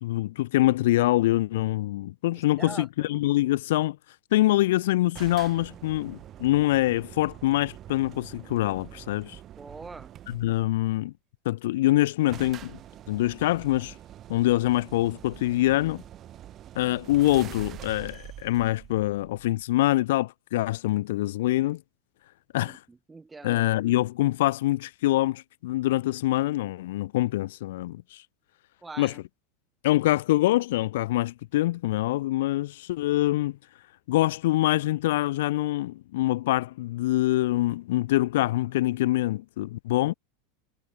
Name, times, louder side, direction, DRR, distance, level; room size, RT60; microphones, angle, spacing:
voice 1, 0.0-4.0 4.3-9.4 10.3-11.1 11.4-12.8 13.1-13.9 14.3-16.0 16.7-21.8 22.5-22.8 23.4-28.2 29.0-29.1 29.8-33.6 34.1-40.1, left 16 dB, 75° left, 0.8 m, -25 dB
voice 2, 2.4-3.2 9.6-10.1 22.6-23.6 28.8-29.2, right 3 dB, 10° right, 2.7 m, -43 dB
sound 1, 5.1-10.7 11.7-11.8 11.9-12.0 12.3-19.8, right 12 dB, 35° right, 1.5 m, -45 dB
supercardioid pair, 135°, 0 cm